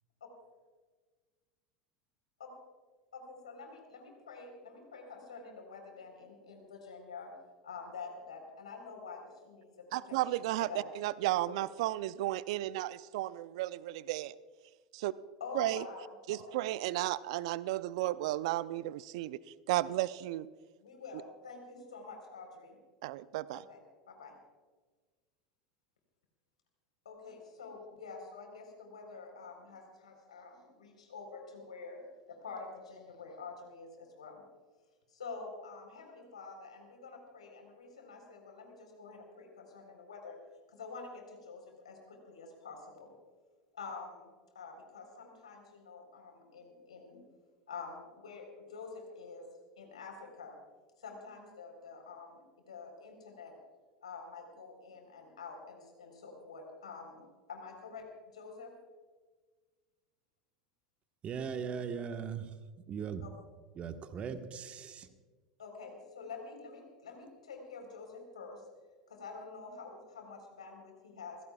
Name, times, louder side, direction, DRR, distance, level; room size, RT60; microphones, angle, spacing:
voice 1, 3.1-7.3 7.6-10.9 11.4-11.6 15.4-16.6 20.8-22.8 23.7-23.8 24.1-24.4 27.0-32.0 32.3-34.4 35.1-40.4 40.7-43.1 43.7-44.3 44.5-47.2 47.7-49.5 49.8-50.6 51.0-53.5 54.0-58.1 58.3-58.7 63.2-63.3 65.6-68.6 69.1-71.4, left 4 dB, 80° left, 3 dB, 4.0 m, -47 dB
voice 2, 9.9-14.3 14.9-15.1 15.5-15.8 16.3-19.4 19.7-20.5 23.0-23.6, right 16 dB, 65° right, 18 dB, 0.5 m, -33 dB
voice 3, 61.2-62.5 62.9-63.2 63.8-65.1, right 6 dB, 35° right, 7 dB, 1.4 m, -39 dB
28.5 x 16.5 x 2.4 m, 1.4 s
hypercardioid pair, 80°, 4 cm